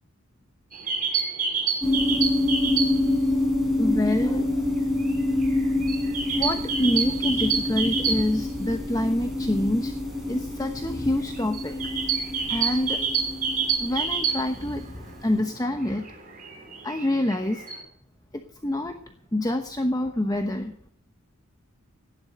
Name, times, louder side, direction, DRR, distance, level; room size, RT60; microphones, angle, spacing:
sound 1, 0.7-3.2 3.4-3.5 3.8-8.7 9.0-9.1 9.4-9.6 10.1-15.1 15.5-17.8, right 6 dB, 40° right, 3.3 m, -28 dB
sound 2, 1.8-15.2, left 2 dB, ahead, 4.5 m, -27 dB
voice 1, 3.7-4.7 6.3-9.9 10.3-12.0 12.5-13.2 13.8-16.1 16.8-17.6 18.6-19.0 19.3-20.9, left 1 dB, 15° left, 6 dB, 1.0 m, -26 dB
16.0 x 10.5 x 6.5 m, 0.67 s
head